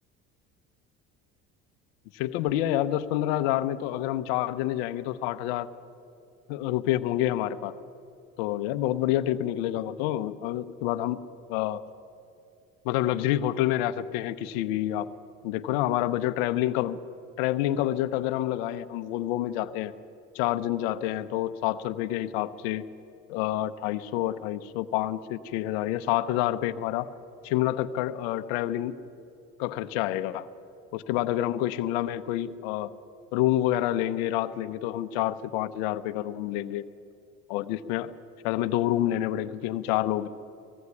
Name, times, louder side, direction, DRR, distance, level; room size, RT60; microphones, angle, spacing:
voice 1, 2.1-5.7 6.5-7.7 8.4-11.2 11.5-11.8 12.8-15.1 15.4-17.0 17.4-19.9 20.3-22.8 23.3-27.1 27.4-29.0 29.6-30.5 30.9-32.9 33.3-36.8 37.5-38.1 38.4-40.3, left 13 dB, 90° left, 12 dB, 0.8 m, -28 dB
18.5 x 16.0 x 9.7 m, 2.6 s
supercardioid pair, 90°, 30 cm